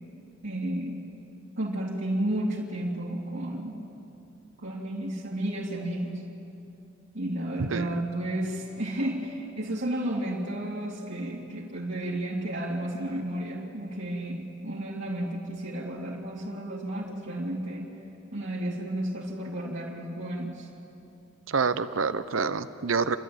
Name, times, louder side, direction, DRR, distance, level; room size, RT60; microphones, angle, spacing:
voice 1, 0.4-1.0 1.6-3.8 4.6-6.2 7.1-18.0 18.3-20.7, right 1 dB, 65° right, -7 dB, 2.7 m, -32 dB
voice 2, 21.5-23.2, right 5 dB, 80° right, 13 dB, 0.8 m, -27 dB
29.5 x 12.0 x 9.3 m, 2.8 s
head